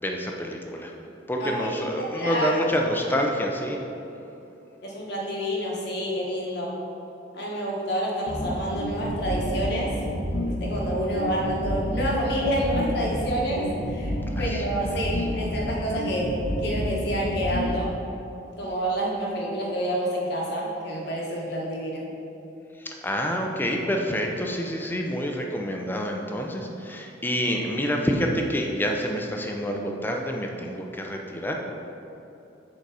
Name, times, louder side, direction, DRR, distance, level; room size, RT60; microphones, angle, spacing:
voice 1, 0.0-0.9 1.3-3.8 14.4-14.5 23.0-31.5, equal, 10° left, 1 dB, 0.5 m, -27 dB
voice 2, 1.4-2.6 4.8-6.7 7.3-9.9 10.4-17.9 18.6-22.1, equal, 60° left, -3 dB, 1.3 m, -28 dB
sound 1, 8.3-17.7, equal, 85° left, 1.2 m, -29 dB
6.5 x 4.0 x 4.8 m, 2.9 s
head